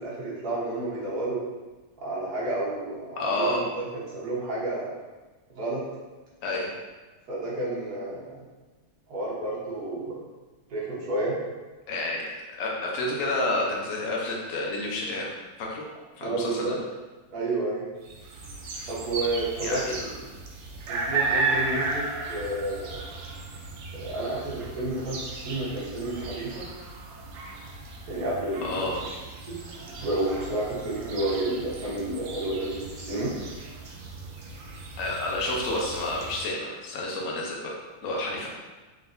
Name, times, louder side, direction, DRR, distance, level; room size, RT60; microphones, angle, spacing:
voice 1, 0.0-1.4 2.0-4.9 5.5-5.8 7.3-8.4 9.1-10.2 10.7-11.4 16.2-16.6 17.3-17.9 18.9-19.8 20.9-23.0 23.9-26.6 28.1-28.9 29.5-29.6 30.0-33.3, right 2 dB, 50° right, -7 dB, 1.4 m, -30 dB
voice 2, 3.2-3.6 6.4-6.7 11.9-12.2 12.6-15.3 15.6-15.8 16.2-16.8 19.6-20.1 28.6-29.0 35.0-37.7 38.0-38.5, left 2 dB, 65° left, -2 dB, 0.8 m, -29 dB
sound 1, 18.0-36.4, right 3 dB, 70° right, 1.2 m, -35 dB
3.8 x 3.8 x 2.6 m, 1.2 s
omnidirectional pair, 2.4 m